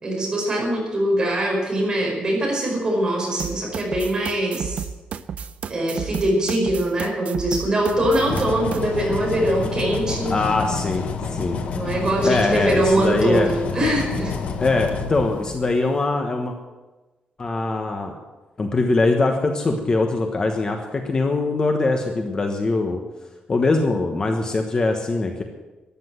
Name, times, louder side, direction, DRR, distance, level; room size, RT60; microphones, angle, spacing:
voice 1, 0.0-4.8 5.7-10.3 11.2-14.3, right 1 dB, 25° right, -2 dB, 5.0 m, -22 dB
sound 1, 3.4-8.8, right 7 dB, 50° right, 0.6 m, -32 dB
sound 2, 7.9-15.9, left 5 dB, 50° left, 1.2 m, -29 dB
voice 2, 10.3-11.0 11.3-11.6 12.2-13.5 14.6-16.5 17.4-18.2 18.6-23.0 23.5-25.4, left 3 dB, 25° left, 4 dB, 1.2 m, -22 dB
14.0 x 10.0 x 7.8 m, 1.2 s
wide cardioid pair, 180°, 3 cm